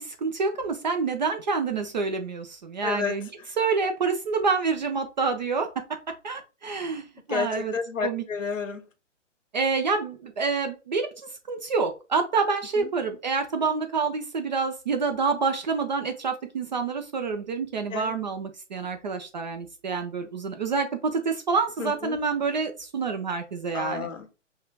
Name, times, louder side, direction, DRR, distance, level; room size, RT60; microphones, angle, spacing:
voice 1, 0.0-3.3 3.6-6.0 6.2-7.7 8.0-8.2 9.5-24.1, right 4 dB, 40° right, 0.4 m, -27 dB
voice 2, 2.8-3.2 7.3-8.8 12.8-12.9 17.9-18.2 21.8-22.2 23.7-24.3, left 5 dB, 80° left, 0.8 m, -31 dB
5.4 x 2.2 x 2.2 m
figure-of-eight pair, 130°, 38 cm